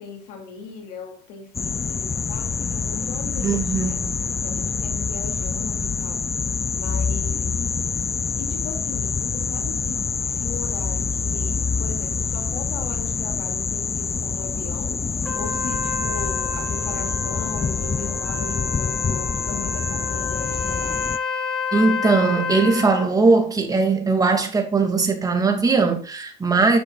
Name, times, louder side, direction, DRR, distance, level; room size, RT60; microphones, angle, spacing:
voice 1, 0.0-4.0 4.4-6.3 6.7-7.5 8.4-15.0 15.3-21.1, left 4 dB, 85° left, 2.7 m, -38 dB
sound 1, 1.5-21.2, left 5 dB, 20° left, 0.3 m, -26 dB
voice 2, 3.4-4.2 21.7-26.8, right 4 dB, 25° right, 2.4 m, -20 dB
Trumpet, 15.2-23.1, left 5 dB, 5° left, 3.4 m, -30 dB
10.5 x 7.6 x 2.4 m
cardioid pair, 100°, 15 cm